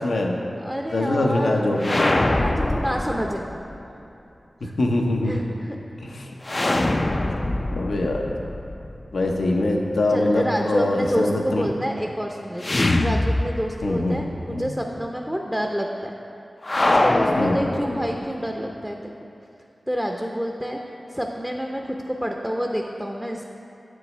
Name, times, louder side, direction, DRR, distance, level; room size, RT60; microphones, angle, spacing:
voice 1, 0.0-0.4 0.9-2.2 4.8-5.5 6.0-6.3 7.7-8.3 9.1-11.7 13.8-14.7 17.4-17.6, left 2 dB, 85° left, 0 dB, 0.7 m, -23 dB
voice 2, 0.6-1.7 2.3-3.5 4.6-4.8 5.3-5.8 10.1-16.1 16.8-19.0 19.9-20.8 21.1-23.4, equal, 5° right, 1 dB, 0.5 m, -28 dB
sound 1, 1.8-3.8 6.4-9.4 12.6-14.0 14.3-14.4 16.6-18.4, left 1 dB, 45° left, 0.4 m, -23 dB
7.9 x 7.1 x 3.2 m, 2.7 s
cardioid pair, 40°, 0 cm